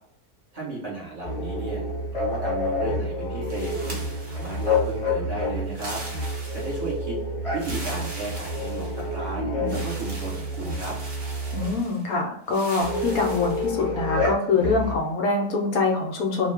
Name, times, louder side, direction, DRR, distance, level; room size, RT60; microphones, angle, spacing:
voice 1, 0.5-1.8 2.1-6.0 6.5-7.2 7.5-11.0, right 3 dB, 25° right, -5 dB, 1.2 m, -34 dB
sound 1, 1.2-11.8 12.8-15.1, left 1 dB, 40° left, 0.5 m, -29 dB
sound 2, 3.5-5.0 5.7-7.0 7.5-9.2 9.7-12.1 12.5-13.7, right 2 dB, 45° right, 0.6 m, -41 dB
voice 2, 11.5-16.5, left 3 dB, 70° left, 1 dB, 1.0 m, -24 dB
2.5 x 2.2 x 3.3 m, 0.70 s
omnidirectional pair, 1.7 m